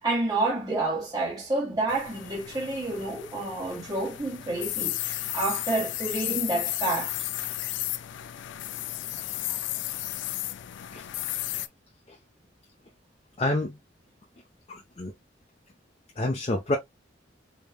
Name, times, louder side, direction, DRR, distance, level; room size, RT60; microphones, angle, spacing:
voice 1, 0.0-5.0 5.3-7.1, right 2 dB, 20° right, 1.4 m, -29 dB
sound 1, 1.9-11.7, left 14 dB, 90° left, 0.4 m, -33 dB
voice 2, 13.4-13.8 14.7-15.1 16.2-16.8, left 1 dB, 35° left, 0.6 m, -28 dB
3.8 x 3.6 x 2.2 m
head